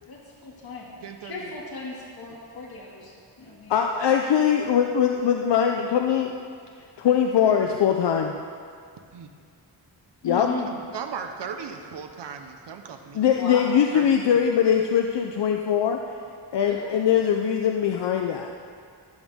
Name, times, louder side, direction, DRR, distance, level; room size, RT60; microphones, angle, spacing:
voice 1, 0.1-3.9 10.2-10.7 13.4-13.7 16.5-17.0, left 3 dB, 60° left, -4 dB, 2.4 m, -37 dB
voice 2, 1.0-1.4 3.5-3.6 9.1-9.3 10.3-10.5 10.9-13.2 13.9-14.1, right 6 dB, 80° right, 5 dB, 1.0 m, -37 dB
voice 3, 3.7-6.3 7.0-8.4 10.2-10.5 13.1-16.0 16.5-18.5, left 8 dB, 75° left, 3 dB, 0.7 m, -21 dB
14.5 x 12.5 x 3.6 m, 2.2 s
wide cardioid pair, 110°, 42 cm